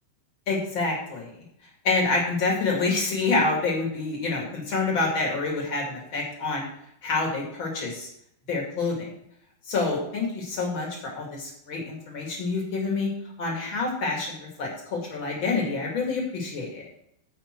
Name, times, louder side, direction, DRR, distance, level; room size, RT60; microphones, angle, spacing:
voice 1, 0.5-1.3 1.8-6.7 7.0-8.1 8.5-9.1 9.7-13.1 13.4-16.9, left 3 dB, 40° left, -1 dB, 1.9 m, -27 dB
15.0 x 5.6 x 4.5 m, 0.73 s
omnidirectional pair, 5.2 m